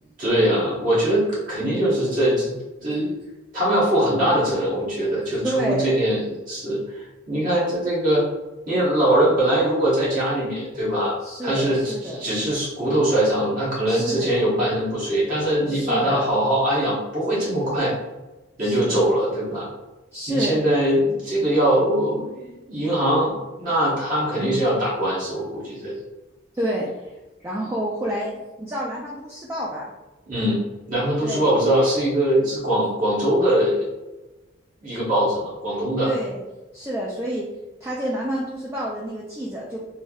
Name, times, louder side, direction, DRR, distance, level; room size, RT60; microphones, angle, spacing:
voice 1, 0.2-2.6 2.8-3.1 3.5-8.3 8.7-11.2 11.4-17.9 18.6-19.7 20.3-25.9 30.3-33.9 34.8-36.1, right 1 dB, 45° right, -7 dB, 1.0 m, -22 dB
voice 2, 5.4-6.0 11.2-12.2 13.9-14.4 15.7-16.3 18.6-19.1 20.1-20.6 24.4-24.6 26.6-27.2 27.4-29.9 31.2-31.5 36.0-36.4 36.7-37.5 37.8-39.8, right 1 dB, 15° right, -4 dB, 0.3 m, -28 dB
3.2 x 2.6 x 2.3 m, 1.1 s
head